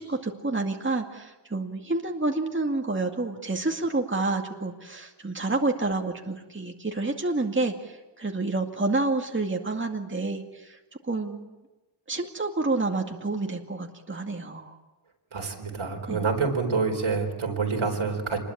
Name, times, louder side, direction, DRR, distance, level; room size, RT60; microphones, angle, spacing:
voice 1, 0.0-10.8 11.0-11.5 12.1-14.7 16.1-16.3, right 2 dB, 25° right, 2 dB, 2.2 m, -29 dB
voice 2, 15.3-18.4, right 4 dB, 90° right, 2 dB, 4.5 m, -27 dB
26.5 x 20.5 x 8.7 m, 1.1 s
wide cardioid pair, 100°, 47 cm